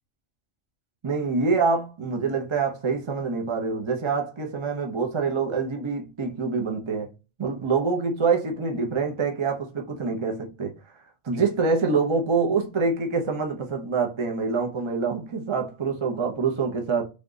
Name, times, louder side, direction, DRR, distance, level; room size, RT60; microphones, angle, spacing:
voice 1, 1.0-7.1 7.4-10.7 11.2-17.0, right 4 dB, 30° right, 0.6 m, -25 dB
3.6 x 2.3 x 3.8 m
omnidirectional pair, 1.2 m